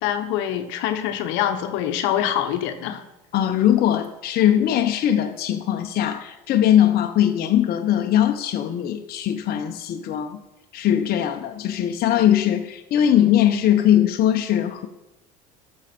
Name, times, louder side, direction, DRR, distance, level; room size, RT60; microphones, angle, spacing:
voice 1, 0.0-3.0, left 10 dB, 70° left, 7 dB, 1.1 m, -25 dB
voice 2, 3.3-10.4 10.7-14.9, left 11 dB, 50° left, 4 dB, 0.9 m, -20 dB
12.5 x 6.5 x 4.4 m, 0.93 s
supercardioid pair, 95°, 20 cm